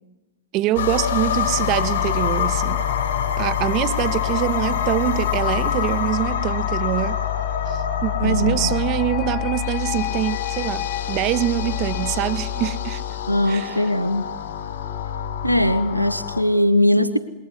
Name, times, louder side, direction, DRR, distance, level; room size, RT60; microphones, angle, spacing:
voice 1, 0.5-2.8 3.4-7.2 7.7-13.0 13.5-13.8, right 14 dB, 40° right, 1.1 m, -24 dB
sound 1, 0.7-16.4, left 9 dB, 60° left, 5.7 m, -25 dB
voice 2, 8.2-8.8 13.3-14.3 15.4-17.2, left 1 dB, 90° right, 1.1 m, -20 dB
sound 2, 8.3-13.3, left 13 dB, 45° left, 2.3 m, -34 dB
27.5 x 22.0 x 9.5 m
figure-of-eight pair, 90°, 0 cm